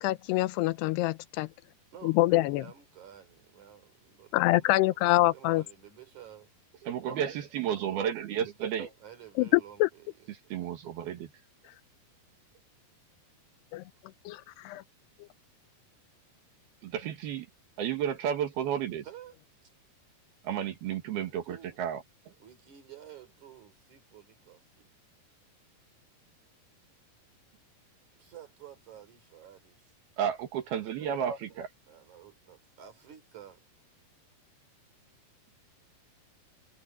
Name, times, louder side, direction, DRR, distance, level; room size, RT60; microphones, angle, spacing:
voice 1, 0.0-1.5 2.0-2.6 4.3-5.6 9.4-9.9 13.7-13.8 14.3-14.8, left 18 dB, 85° left, 2.8 m, -25 dB
voice 2, 1.9-6.5 8.4-8.5 9.0-10.5 19.0-19.3 19.6-19.7 21.2-21.8 22.4-24.9 28.2-29.8 31.9-33.6, right 10 dB, 45° right, 5.3 m, -51 dB
voice 3, 6.8-8.9 10.3-11.3 16.8-17.5 17.8-19.1 20.4-22.3 30.2-31.7, right 9 dB, 70° right, 3.6 m, -32 dB
omnidirectional pair, 4.7 m